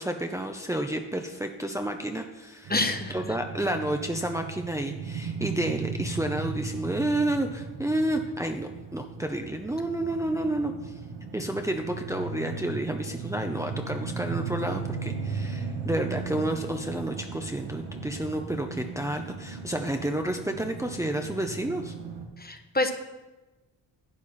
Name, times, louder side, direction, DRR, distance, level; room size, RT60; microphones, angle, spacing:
voice 1, 0.0-2.7 3.1-11.0 11.3-21.9, right 1 dB, 5° right, 3 dB, 1.0 m, -30 dB
sound 1, 2.6-22.3, right 4 dB, 85° right, 1.4 m, -37 dB
voice 2, 2.7-3.4 22.4-22.9, left 2 dB, 20° left, 7 dB, 1.3 m, -27 dB
11.5 x 8.2 x 4.3 m, 1.1 s
supercardioid pair, 55°, 43 cm